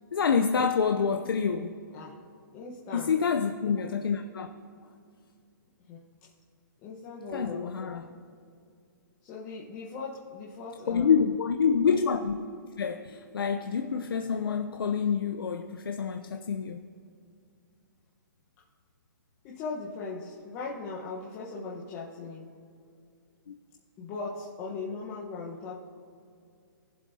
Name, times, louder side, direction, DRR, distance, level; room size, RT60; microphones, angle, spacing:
voice 1, 0.1-1.8 2.9-4.5 7.3-8.1 10.9-12.4 12.8-16.8 23.5-23.6, left 6 dB, 85° left, 5 dB, 0.7 m, -27 dB
voice 2, 2.5-3.1 5.9-6.3 6.8-8.0 9.2-11.1 19.4-22.5 24.0-25.8, left 4 dB, 20° left, -5 dB, 1.1 m, -39 dB
21.0 x 7.6 x 2.8 m, 2.4 s
hypercardioid pair, 160°, 12 cm